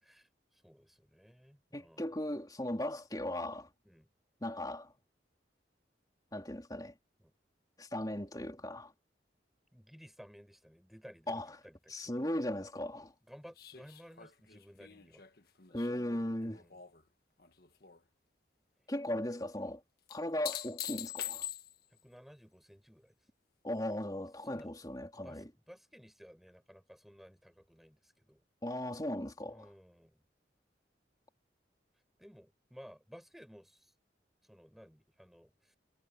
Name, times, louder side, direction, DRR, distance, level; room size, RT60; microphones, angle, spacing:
voice 1, 0.0-2.0 3.8-4.1 7.2-7.3 9.7-12.1 13.3-15.3 16.4-16.8 21.9-23.2 24.4-24.7 25.1-28.4 29.4-30.2 32.2-33.9 34.5-35.8, equal, ahead, 7.2 m, -56 dB
voice 2, 1.7-3.7 4.4-4.9 6.3-6.9 7.8-8.9 11.3-11.6 11.9-13.1 15.7-16.6 18.9-19.8 20.1-21.5 23.6-25.5 28.6-29.7, left 1 dB, 20° left, 3.9 m, -37 dB
sound 1, 13.6-17.0 17.4-18.0 20.1-22.0 24.6-24.7, left 11 dB, 55° left, 1.6 m, -44 dB
head